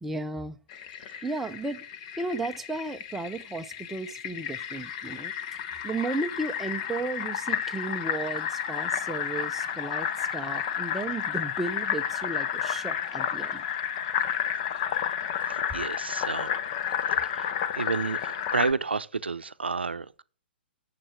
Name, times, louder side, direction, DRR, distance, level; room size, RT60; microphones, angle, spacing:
voice 1, 0.0-0.6 1.2-1.8 2.2-5.3 5.8-13.6, right 2 dB, 5° right, 0.6 m, -34 dB
Fill (with liquid), 0.7-18.7, left 9 dB, 40° left, 1.0 m, -31 dB
voice 2, 15.5-16.5 17.2-20.2, right 4 dB, 80° right, 0.7 m, -31 dB
7.5 x 7.5 x 8.3 m
figure-of-eight pair, 120°, 6 cm